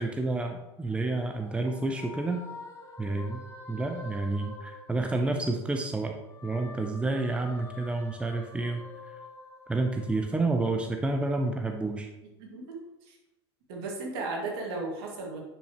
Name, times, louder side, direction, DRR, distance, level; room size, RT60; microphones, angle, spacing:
voice 1, 0.0-2.4 3.0-3.4 3.7-6.1 6.4-8.9 9.7-12.1, right 2 dB, 10° right, 4 dB, 0.7 m, -29 dB
sound 1, 0.7-5.7 6.1-10.8, left 3 dB, 20° left, 1.5 m, -48 dB
voice 2, 12.4-12.8 13.1-13.2 13.7-15.4, right 3 dB, 60° right, 0 dB, 2.3 m, -35 dB
10.5 x 5.8 x 3.1 m, 0.98 s
hypercardioid pair, 90°, 14 cm